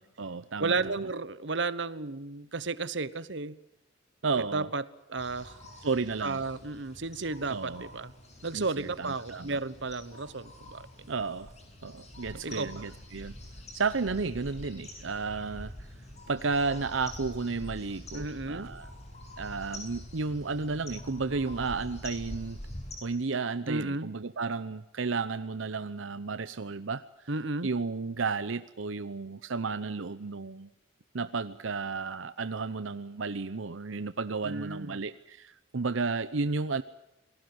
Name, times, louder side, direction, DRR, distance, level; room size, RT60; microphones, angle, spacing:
voice 1, 0.0-0.8 4.2-4.7 5.8-6.4 7.5-7.9 8.5-9.6 11.1-11.5 11.8-13.4 13.7-15.7 16.3-18.9 19.4-22.6 23.0-27.0 27.6-30.7 31.1-36.8, right 4 dB, 85° right, 13 dB, 0.8 m, -32 dB
voice 2, 0.6-3.6 4.3-5.6 6.2-8.1 8.4-10.9 12.4-12.8 18.1-18.7 23.7-24.1 27.3-27.7 34.4-35.0, right 3 dB, 65° right, 16 dB, 1.1 m, -33 dB
sound 1, 5.2-23.0, left 1 dB, 35° left, 7.7 m, -46 dB
28.0 x 20.0 x 7.9 m, 0.88 s
head